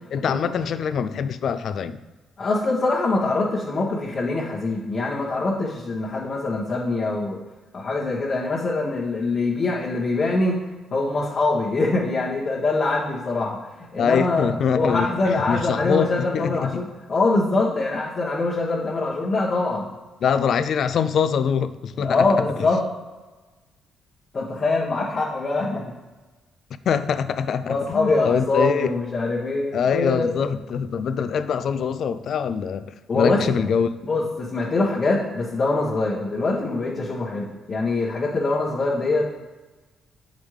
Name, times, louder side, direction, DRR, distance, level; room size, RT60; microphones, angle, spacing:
voice 1, 0.1-2.0 14.0-16.8 20.2-22.7 26.9-28.9 29.7-33.9, left 7 dB, 65° left, 0.4 m, -24 dB
voice 2, 2.4-7.4 7.7-10.6 10.9-19.9 22.0-22.8 24.3-25.8 27.6-30.3 33.1-33.4 34.0-39.3, left 3 dB, 40° left, 1.2 m, -24 dB
7.2 x 5.1 x 3.2 m
cardioid pair, 90°, 0 cm